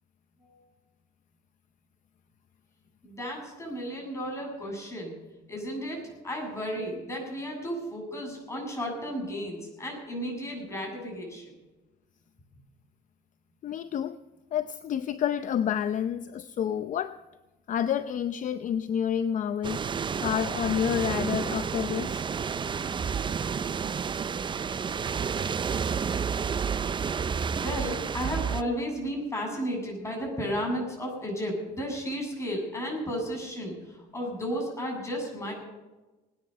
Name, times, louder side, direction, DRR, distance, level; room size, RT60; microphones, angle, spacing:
voice 1, 3.0-5.1 5.5-11.5 27.6-35.5, equal, 15° left, 0 dB, 7.6 m, -33 dB
voice 2, 13.6-14.2 14.5-17.1 17.7-19.9 20.2-22.3, left 9 dB, 50° left, 11 dB, 0.6 m, -29 dB
sound 1, 19.6-28.6, right 6 dB, 30° right, 0.6 m, -30 dB
20.0 x 9.8 x 6.7 m, 1.1 s
cardioid pair, 110°, 17 cm